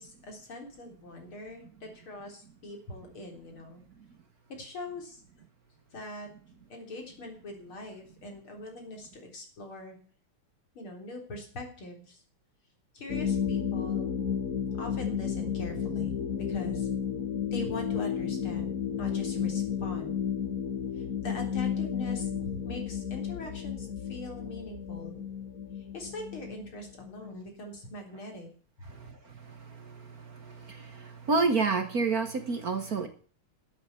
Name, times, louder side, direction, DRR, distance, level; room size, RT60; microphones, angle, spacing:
voice 1, 0.0-3.8 4.5-5.2 5.9-6.3 6.7-10.0 10.7-12.2 12.9-14.1 14.8-16.1 16.5-16.9 17.5-20.2 20.9-25.2 25.8-28.5 28.8-28.9, left 2 dB, 70° left, 3 dB, 4.6 m, -42 dB
sound 1, 13.1-27.5, left 7 dB, 45° left, 1.4 m, -32 dB
voice 2, 28.9-33.1, right 4 dB, 45° right, 8 dB, 1.6 m, -30 dB
12.0 x 8.2 x 8.4 m, 0.42 s
omnidirectional pair, 2.4 m